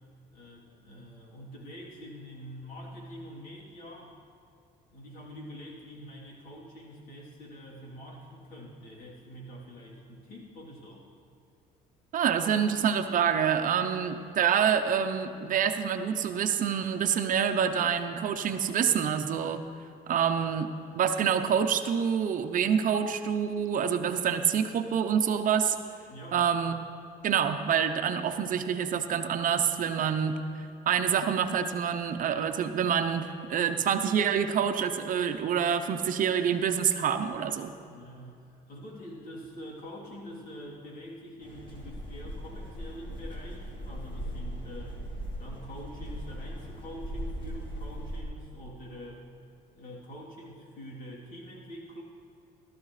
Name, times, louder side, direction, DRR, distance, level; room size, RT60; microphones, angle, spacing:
voice 1, 0.3-4.2 4.9-11.0 26.1-26.4 37.8-45.0 45.4-49.2 49.7-52.0, equal, 60° left, -4 dB, 3.3 m, -45 dB
voice 2, 12.1-19.7 20.1-20.7 21.0-25.8 26.3-26.9 27.2-30.4 30.9-37.7, right 8 dB, 55° right, 8 dB, 0.7 m, -27 dB
sound 1, 41.4-48.2, equal, 30° left, 2.1 m, -39 dB
16.5 x 13.0 x 3.3 m, 2.5 s
cardioid pair, 110°, 17 cm